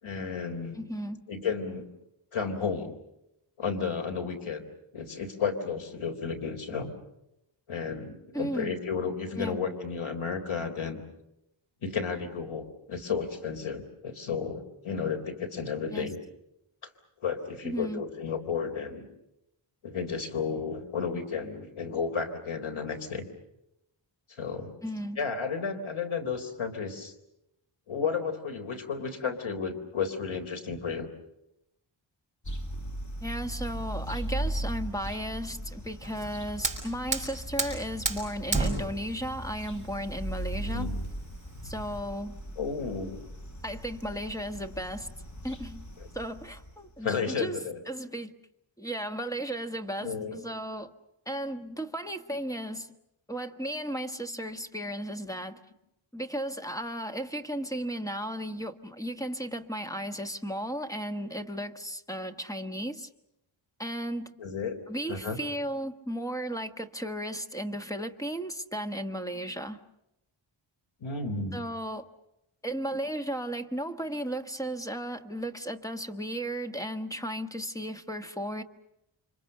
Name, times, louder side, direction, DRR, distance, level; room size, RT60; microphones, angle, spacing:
voice 1, 0.0-0.8 1.3-1.9 2.3-3.0 3.6-4.6 4.9-6.9 7.7-11.0 11.8-16.2 16.8-16.9 17.2-19.0 19.8-23.2 24.4-24.7 25.2-27.1 27.9-31.1 40.6-41.0 42.6-43.2 47.0-47.8 50.0-50.4 64.4-64.8 65.1-65.4 71.0-71.6, left 5 dB, 80° left, 6 dB, 3.9 m, -32 dB
voice 2, 0.7-1.2 8.3-8.7 9.4-9.6 15.9-16.1 17.6-18.0 24.8-25.2 33.2-40.9 41.6-42.4 43.6-45.1 45.4-45.8 46.1-47.6 47.9-48.3 48.8-50.9 51.3-52.9 53.3-55.6 56.1-63.1 63.8-64.3 64.9-69.8 71.5-72.1 72.6-78.6, equal, 5° left, 7 dB, 1.4 m, -35 dB
sound 1, 32.4-47.0, right 1 dB, 35° left, 2.5 m, -38 dB
Fire, 36.0-42.0, right 3 dB, 15° right, 6.4 m, -34 dB
29.5 x 25.5 x 6.7 m, 0.85 s
wide cardioid pair, 130°, 48 cm